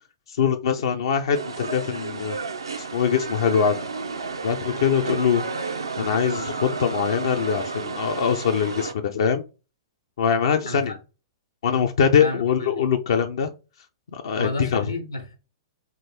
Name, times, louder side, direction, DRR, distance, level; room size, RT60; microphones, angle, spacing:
voice 1, 0.3-2.4 2.8-3.7 4.4-5.4 6.0-9.4 10.2-10.9 11.6-13.5 14.1-14.9, left 7 dB, 65° left, 0.5 m, -23 dB
sound 1, 1.3-8.9, right 4 dB, 85° right, 0.6 m, -31 dB
voice 2, 10.6-11.0 12.2-12.7 14.4-15.4, left 1 dB, 90° left, 1.4 m, -31 dB
3.7 x 2.5 x 4.2 m
figure-of-eight pair, 105°, 2 cm